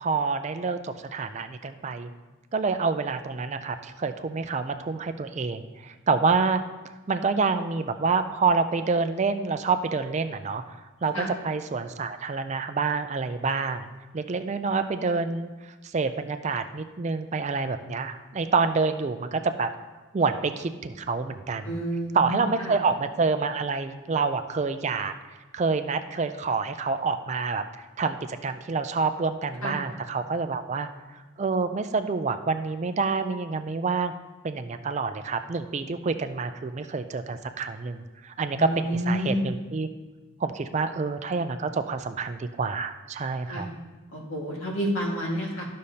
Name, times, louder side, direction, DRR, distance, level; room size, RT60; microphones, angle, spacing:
voice 1, 0.0-2.1 2.5-6.6 7.1-13.9 14.1-19.7 20.1-21.7 22.1-25.1 25.5-30.9 31.1-34.1 34.4-39.9 40.4-43.7, right 4 dB, 35° right, 9 dB, 0.4 m, -27 dB
voice 2, 21.6-22.8 29.6-29.8 38.5-39.4 43.5-43.7 44.1-45.7, equal, 85° left, -2 dB, 1.8 m, -29 dB
12.0 x 6.4 x 2.8 m, 1.2 s
head